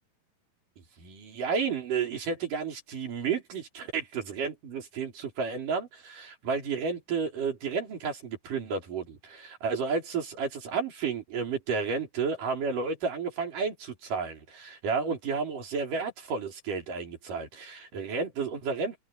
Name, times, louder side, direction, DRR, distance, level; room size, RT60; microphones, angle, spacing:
voice 1, 1.0-19.0, right 5 dB, 70° right, 6.0 m, -32 dB
omnidirectional pair, 4.0 m